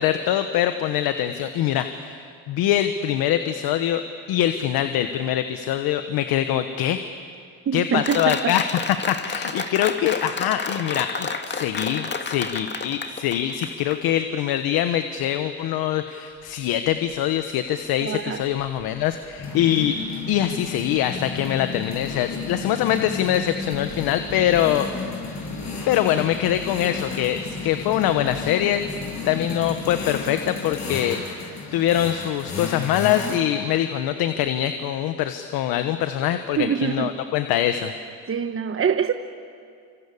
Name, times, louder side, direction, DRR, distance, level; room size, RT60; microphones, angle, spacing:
voice 1, 0.0-2.2 2.5-4.0 4.3-7.0 7.7-8.6 9.1-20.0 20.3-25.2 25.9-28.8 29.3-31.2 31.7-37.9, left 11 dB, 85° left, 8 dB, 1.2 m, -23 dB
voice 2, 7.7-8.6 9.6-9.7 18.0-18.4 36.6-37.2 38.2-39.1, right 7 dB, 35° right, 8 dB, 1.1 m, -25 dB
Applause, 8.1-14.0, left 4 dB, 30° left, 1.9 m, -30 dB
sound 1, 16.5-16.6 16.9-17.2 18.4-33.4, left 4 dB, 50° left, 7.8 m, -33 dB
26.0 x 25.5 x 8.6 m, 2.3 s
cardioid pair, 85°, 36 cm